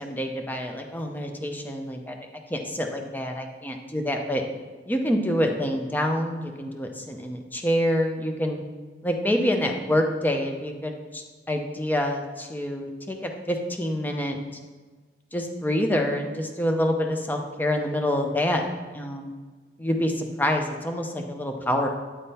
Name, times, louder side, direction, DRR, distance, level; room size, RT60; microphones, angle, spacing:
voice 1, 0.0-4.4 4.9-8.6 9.0-14.4 15.3-18.6 18.9-19.3 19.8-21.9, left 1 dB, 10° left, 3 dB, 0.5 m, -27 dB
8.6 x 3.6 x 4.2 m, 1.4 s
head